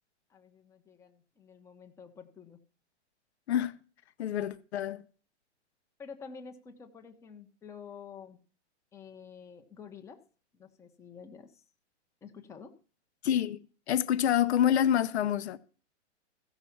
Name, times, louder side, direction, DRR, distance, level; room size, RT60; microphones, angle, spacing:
voice 1, 0.3-2.6 6.0-8.4 8.9-10.2 10.5-11.6 12.2-12.7, left 6 dB, 10° left, 0.9 m, -49 dB
voice 2, 4.2-5.0 13.2-13.6 13.9-15.6, left 10 dB, 65° left, 0.8 m, -27 dB
15.0 x 5.6 x 7.1 m
hypercardioid pair, 145°, 35 cm